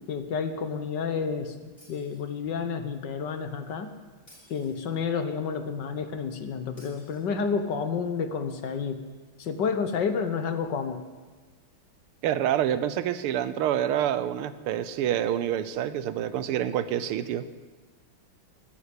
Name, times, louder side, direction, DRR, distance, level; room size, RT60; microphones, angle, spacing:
voice 1, 0.0-3.9 4.5-9.0 9.4-11.0, left 6 dB, 60° left, 9 dB, 1.5 m, -30 dB
Shatter, 1.8-2.7 4.3-5.3 6.8-7.8, equal, 20° left, 6.3 m, -57 dB
voice 2, 12.2-17.4, right 10 dB, 85° right, 14 dB, 1.7 m, -27 dB
13.5 x 11.5 x 8.4 m, 1.4 s
omnidirectional pair, 2.4 m